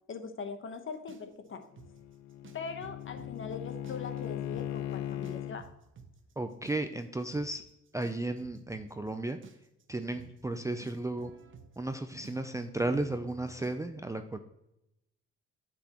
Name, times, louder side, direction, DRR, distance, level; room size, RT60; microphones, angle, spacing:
voice 1, 0.1-1.6 2.5-5.7, left 5 dB, 45° left, 7 dB, 1.0 m, -41 dB
sound 1, 1.1-3.3 3.7-4.3 4.5-4.7 5.2-13.8, right 6 dB, 45° right, 0.8 m, -52 dB
Bowed string instrument, 1.6-5.6, left 12 dB, 70° left, 0.5 m, -38 dB
voice 2, 6.4-7.6 7.9-9.4 9.9-11.3 11.8-14.4, right 2 dB, 10° right, 7 dB, 0.4 m, -34 dB
8.3 x 6.1 x 2.9 m, 0.86 s
cardioid pair, 90°, 29 cm